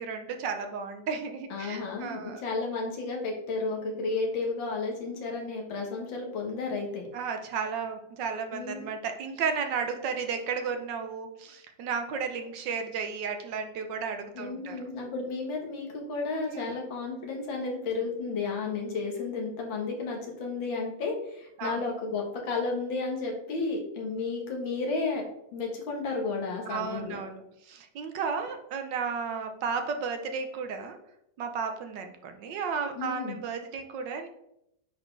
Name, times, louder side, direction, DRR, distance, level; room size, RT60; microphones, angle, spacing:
voice 1, 0.0-2.4 7.1-14.8 16.5-16.7 21.6-21.8 26.7-31.0 31.4-34.3, right 5 dB, 75° right, 6 dB, 1.4 m, -33 dB
voice 2, 1.5-7.1 8.5-8.8 14.3-25.2 25.5-27.2 33.0-33.4, left 3 dB, 90° left, 0 dB, 2.2 m, -32 dB
9.4 x 4.2 x 3.3 m, 0.78 s
omnidirectional pair, 2.0 m